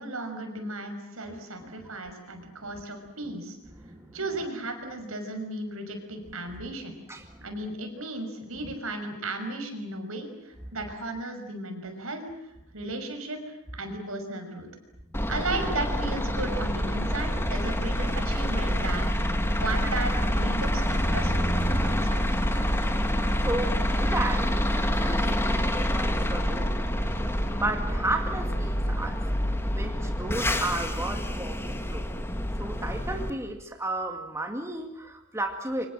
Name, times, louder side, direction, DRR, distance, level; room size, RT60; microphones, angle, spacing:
voice 1, 0.0-3.6 4.1-7.0 7.4-12.2 12.7-14.7 15.3-19.1 19.5-22.3, right 2 dB, 70° right, 6 dB, 6.0 m, -35 dB
voice 2, 3.8-4.2 7.1-7.4 23.4-26.7 27.0-27.1 27.6-29.2 29.7-32.1 32.6-35.9, right 2 dB, 15° right, 4 dB, 2.2 m, -33 dB
sound 1, 15.1-33.3, equal, 10° left, 2.1 m, -27 dB
29.0 x 25.5 x 7.5 m, 0.83 s
head